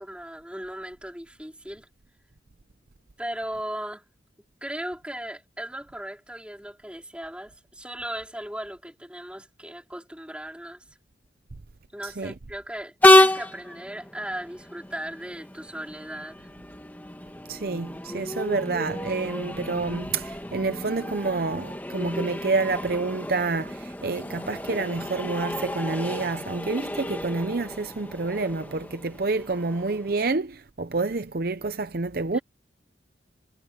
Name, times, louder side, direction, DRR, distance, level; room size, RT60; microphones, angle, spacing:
voice 1, 0.0-1.9 3.2-4.0 4.6-10.8 11.9-16.5 29.3-29.4 32.3-32.4, right 1 dB, 5° right, 3.7 m, -37 dB
Train, 13.0-30.3, left 1 dB, 10° left, 1.9 m, -28 dB
voice 2, 17.5-32.4, right 3 dB, 55° right, 0.7 m, -28 dB
head